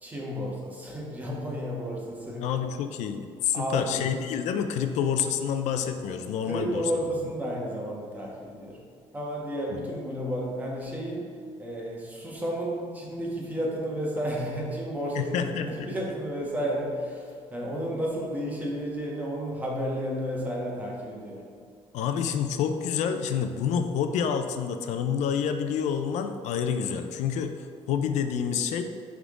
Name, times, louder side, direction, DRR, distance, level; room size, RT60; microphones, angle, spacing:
voice 1, 0.0-2.5 3.5-4.2 4.7-4.9 6.5-8.8 9.1-21.4, equal, 15° right, -3 dB, 1.2 m, -32 dB
voice 2, 2.4-6.9 9.7-9.8 15.1-15.9 21.9-28.8, left 7 dB, 75° left, 7 dB, 0.5 m, -28 dB
9.9 x 3.6 x 3.7 m, 2.2 s
cardioid pair, 150°, 12 cm